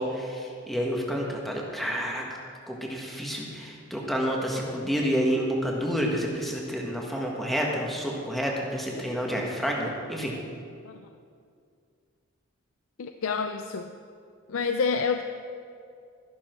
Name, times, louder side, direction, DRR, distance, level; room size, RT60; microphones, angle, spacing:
voice 1, 0.0-2.2 2.7-10.3, equal, ahead, -2 dB, 1.7 m, -29 dB
voice 2, 13.0-13.9 14.5-15.2, left 5 dB, 70° left, 7 dB, 0.5 m, -28 dB
13.0 x 11.5 x 4.6 m, 2.3 s
head